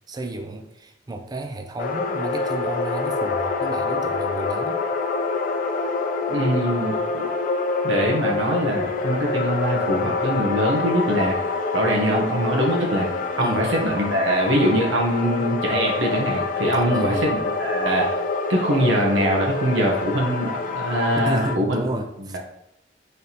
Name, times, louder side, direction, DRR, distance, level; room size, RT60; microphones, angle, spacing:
voice 1, 0.1-4.9 13.4-13.7 16.7-17.3 21.2-22.4, right 2 dB, 20° right, 6 dB, 0.4 m, -31 dB
sound 1, 1.8-21.6, left 3 dB, 45° left, 0.3 m, -26 dB
voice 2, 6.3-7.2 7.8-11.3 11.7-13.1 13.4-18.2 18.5-21.8, equal, 85° right, -1 dB, 0.8 m, -23 dB
4.1 x 3.3 x 2.8 m, 0.81 s
head